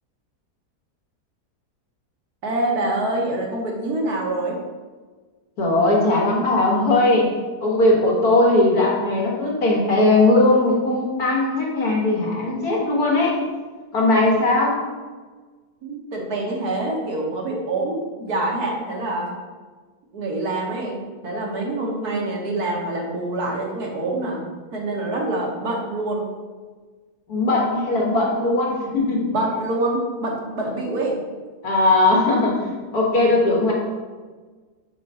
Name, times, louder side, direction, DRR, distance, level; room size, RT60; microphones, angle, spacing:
voice 1, 2.4-4.5 15.8-19.3 20.1-21.0 21.2-24.4 24.7-26.3 29.3-31.2, right 2 dB, 75° right, -1 dB, 1.7 m, -25 dB
voice 2, 5.6-7.3 7.6-13.4 13.9-14.8 27.3-29.3 31.6-33.7, left 2 dB, 70° left, -3 dB, 1.9 m, -19 dB
5.2 x 3.9 x 5.4 m, 1.4 s
omnidirectional pair, 1.7 m